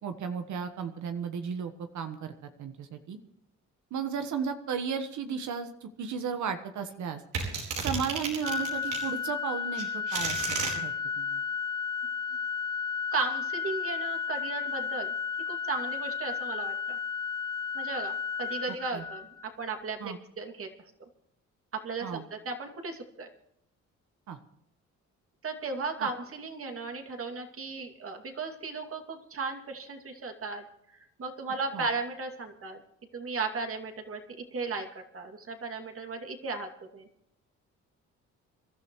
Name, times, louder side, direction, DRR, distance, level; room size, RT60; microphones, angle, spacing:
voice 1, 0.0-3.2 3.9-7.2 7.8-11.4 18.9-19.0 20.0-20.2 22.0-22.2 24.3-24.4 26.0-26.1 31.7-31.9, right 6 dB, 70° right, 7 dB, 1.3 m, -35 dB
sound 1, 7.3-9.1 9.7-10.7, right 5 dB, 85° right, 4.6 m, -32 dB
Organ, 8.4-19.5, left 6 dB, 15° left, 0.5 m, -33 dB
voice 2, 13.1-15.1 15.5-17.0 17.7-20.7 21.0-21.1 21.7-23.3 25.4-30.6 31.2-32.8 33.1-37.1, right 4 dB, 50° right, 4 dB, 2.5 m, -36 dB
26.0 x 12.5 x 3.1 m, 0.77 s
cardioid pair, 90°, 30 cm